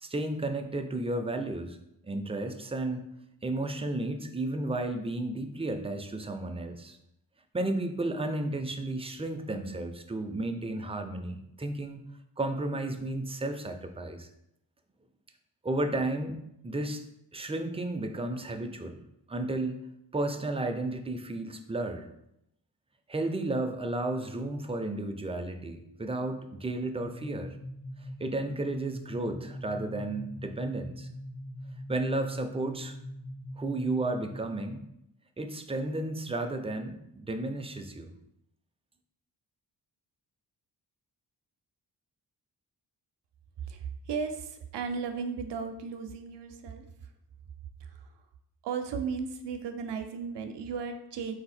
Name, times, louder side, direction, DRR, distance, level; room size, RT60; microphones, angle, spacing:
voice 1, 0.0-1.8 2.0-3.0 3.4-7.0 7.5-12.0 12.4-14.3 15.6-17.0 17.3-19.0 19.3-19.8 20.1-22.1 23.1-27.5 28.2-31.1 31.9-32.9 33.6-34.8 35.4-38.1, right 2 dB, 15° right, 6 dB, 0.5 m, -33 dB
sound 1, 27.0-34.6, equal, 80° left, 1.2 m, -42 dB
voice 2, 43.6-46.9 47.8-48.1 48.6-51.3, right 5 dB, 80° right, 7 dB, 0.6 m, -35 dB
4.0 x 2.8 x 4.2 m, 0.80 s
cardioid pair, 60°, 42 cm